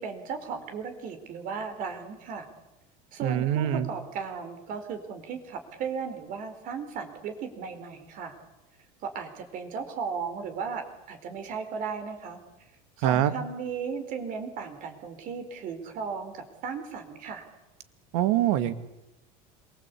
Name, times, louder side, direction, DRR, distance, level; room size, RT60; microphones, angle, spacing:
voice 1, 0.0-2.5 3.1-8.3 9.0-12.4 13.0-17.4, right 6 dB, 45° right, 7 dB, 4.5 m, -36 dB
voice 2, 3.2-3.9 13.0-13.3 18.1-18.7, right 12 dB, 70° right, 9 dB, 2.2 m, -24 dB
26.5 x 23.5 x 8.5 m, 0.98 s
cardioid pair, 150°, 19 cm